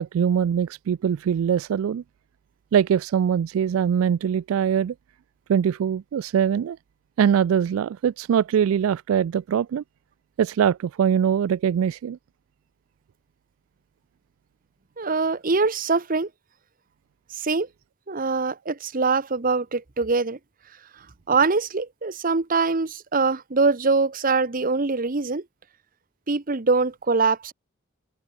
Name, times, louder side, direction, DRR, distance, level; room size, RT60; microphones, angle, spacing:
voice 1, 0.0-2.0 2.7-4.9 5.5-6.8 7.2-9.8 10.4-12.2, right 8 dB, 80° right, 0.3 m, -22 dB
voice 2, 15.0-16.3 17.3-17.7 18.1-20.4 21.3-25.4 26.3-27.5, right 4 dB, 40° right, 1.0 m, -23 dB
head